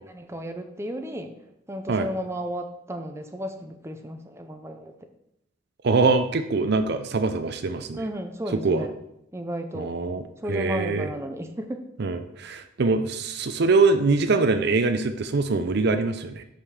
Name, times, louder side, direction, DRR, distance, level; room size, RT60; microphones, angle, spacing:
voice 1, 0.1-1.4 1.7-4.9 8.0-8.9 9.3-9.9 10.4-11.8, equal, 15° right, 6 dB, 0.6 m, -33 dB
voice 2, 5.8-8.1 8.5-8.9 9.7-10.2 10.5-11.1 12.0-16.4, right 3 dB, 55° right, 9 dB, 0.5 m, -23 dB
5.6 x 5.1 x 6.4 m, 0.82 s
head